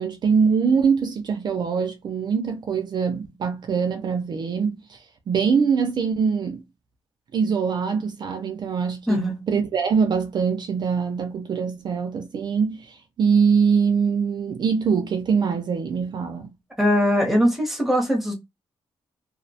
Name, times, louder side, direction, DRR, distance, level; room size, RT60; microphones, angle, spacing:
voice 1, 0.0-6.6 7.3-16.5, right 6 dB, 45° right, 0.4 m, -23 dB
voice 2, 9.1-9.5 16.8-18.3, equal, ahead, 0.7 m, -21 dB
2.5 x 2.0 x 2.7 m
wide cardioid pair, 175°, 10 cm